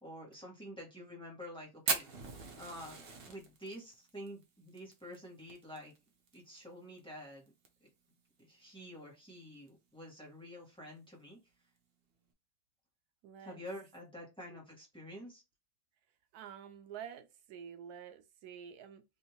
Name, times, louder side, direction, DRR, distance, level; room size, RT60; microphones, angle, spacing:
voice 1, 0.0-2.1 2.6-5.9 6.3-7.5 7.8-7.9 8.4-11.4 13.4-15.4, equal, 5° left, 1.2 m, -48 dB
Fire, 1.9-6.4 6.6-6.7 7.0-7.1 7.5-7.9 8.4-8.5 9.5-9.7, right 4 dB, 50° right, 0.8 m, -39 dB
voice 2, 13.2-13.6 14.5-14.6 16.3-19.0, right 8 dB, 85° right, 1.1 m, -49 dB
3.4 x 2.7 x 2.9 m
omnidirectional pair, 1.6 m